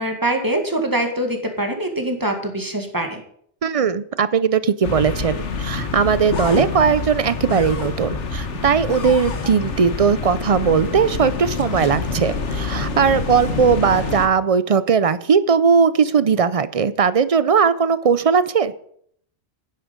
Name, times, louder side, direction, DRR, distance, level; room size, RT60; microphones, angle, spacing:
voice 1, 0.0-3.2, right 1 dB, 15° right, 4 dB, 1.9 m, -23 dB
voice 2, 3.6-18.7, right 6 dB, 45° right, 15 dB, 0.5 m, -18 dB
sound 1, 4.8-14.3, left 4 dB, 80° left, 1.6 m, -26 dB
11.0 x 10.0 x 5.2 m, 0.65 s
omnidirectional pair, 1.2 m